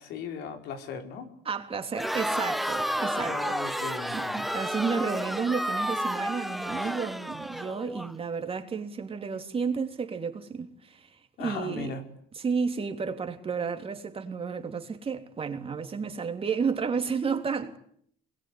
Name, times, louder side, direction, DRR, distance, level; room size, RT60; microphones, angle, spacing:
voice 1, 0.0-1.3 3.2-4.4 11.4-12.0, left 5 dB, 80° left, 4.9 m, -37 dB
voice 2, 1.5-3.9 4.1-11.9 12.4-17.8, right 5 dB, 35° right, 3.4 m, -32 dB
Crowd, 1.9-8.1, equal, ahead, 1.3 m, -31 dB
27.0 x 21.5 x 10.0 m
cardioid pair, 110°, 17 cm